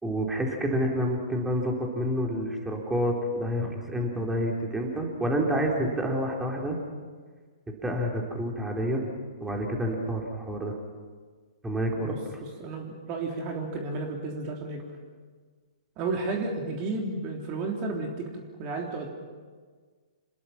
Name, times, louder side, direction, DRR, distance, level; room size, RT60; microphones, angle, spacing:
voice 1, 0.0-6.8 7.7-9.0 9.4-10.8 11.6-12.1, equal, 10° right, 0 dB, 3.7 m, -28 dB
voice 2, 12.0-14.8 16.0-19.1, right 3 dB, 35° right, 1 dB, 3.5 m, -33 dB
27.5 x 20.5 x 6.0 m, 1.5 s
hypercardioid pair, 120°, 3 cm